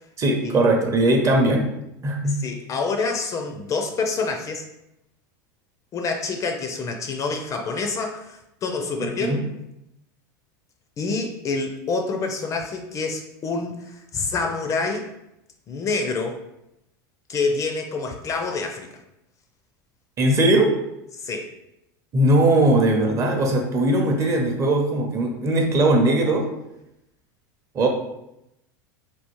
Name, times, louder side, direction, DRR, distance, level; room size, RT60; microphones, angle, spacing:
voice 1, 0.2-1.7 2.0-2.4 9.0-9.4 20.2-20.8 22.1-26.5 27.7-27.9, right 1 dB, 30° right, 2 dB, 0.6 m, -19 dB
voice 2, 2.2-4.6 5.9-9.4 11.0-15.1 15.7-16.4 17.3-18.9 21.2-21.5, left 4 dB, 30° left, 4 dB, 0.4 m, -27 dB
3.4 x 2.3 x 3.0 m, 0.85 s
supercardioid pair, 120°, 11 cm